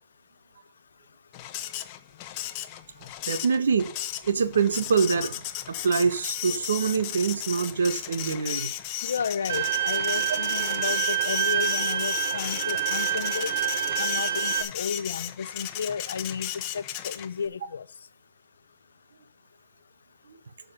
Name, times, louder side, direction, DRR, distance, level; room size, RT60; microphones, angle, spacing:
Printer, 1.3-17.5, left 12 dB, 30° left, 1.0 m, -35 dB
voice 1, 3.3-3.9 4.2-5.4 5.7-8.7 20.3-20.4, right 5 dB, 75° right, 1.4 m, -25 dB
voice 2, 9.0-13.5 14.0-17.8, left 6 dB, 80° left, 0.5 m, -33 dB
Bowed string instrument, 9.5-14.6, right 10 dB, 55° right, 1.3 m, -27 dB
6.8 x 6.6 x 6.8 m
hypercardioid pair, 145°, 0 cm